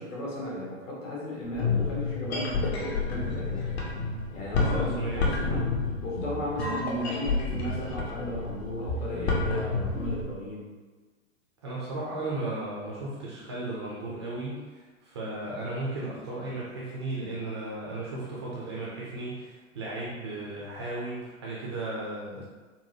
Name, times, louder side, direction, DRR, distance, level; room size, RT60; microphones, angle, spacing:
voice 1, 0.0-3.7 4.3-10.7, left 1 dB, 65° left, -5 dB, 1.4 m, -35 dB
sound 1, 1.4-10.3, left 3 dB, 50° left, 0.8 m, -30 dB
voice 2, 4.6-5.4 11.6-22.4, right 2 dB, 25° right, -5 dB, 0.3 m, -35 dB
4.1 x 2.1 x 2.7 m, 1.3 s
figure-of-eight pair, 105°, 40 cm